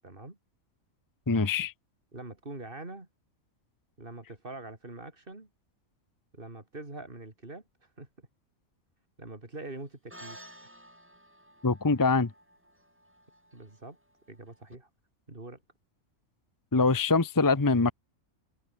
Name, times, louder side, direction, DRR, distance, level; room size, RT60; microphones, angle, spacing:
voice 1, 0.0-0.4 2.1-3.1 4.0-5.5 6.3-7.6 8.0-8.3 9.2-10.4 13.5-14.0 14.3-14.9 15.3-15.6, right 2 dB, 40° right, 4.0 m, -44 dB
voice 2, 1.3-1.7 11.6-12.3 16.7-17.9, left 3 dB, 15° left, 0.8 m, -24 dB
sound 1, 10.1-14.8, equal, 10° right, 5.3 m, -53 dB
open air
omnidirectional pair, 1.4 m